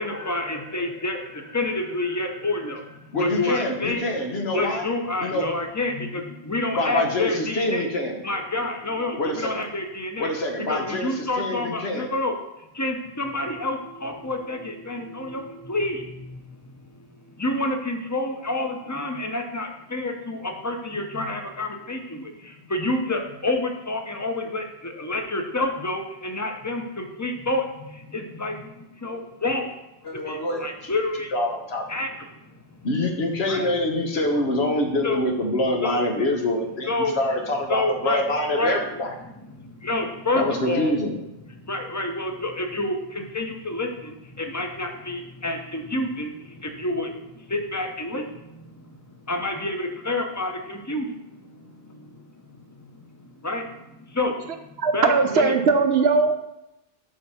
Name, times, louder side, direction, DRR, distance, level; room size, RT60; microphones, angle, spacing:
voice 1, 0.0-4.0 4.5-7.9 8.2-10.3 10.7-12.3 12.7-16.8 17.1-29.7 30.2-31.3 31.9-32.1 32.4-32.5 33.5-33.7 35.0-35.2 35.8-36.0 36.9-37.2 37.7-38.2 38.6-38.8 39.5-41.0 41.6-48.9 49.2-55.5, left 2 dB, 20° left, 4 dB, 0.6 m, -29 dB
voice 2, 3.1-4.8 5.2-5.5 6.7-8.2 9.2-9.6 10.2-12.1 30.0-30.9 31.3-31.8 32.8-39.1 40.3-41.2, left 1 dB, 90° left, 2 dB, 1.3 m, -25 dB
voice 3, 54.8-56.3, right 4 dB, 80° right, 7 dB, 1.0 m, -19 dB
7.5 x 3.5 x 5.6 m, 0.89 s
omnidirectional pair, 1.0 m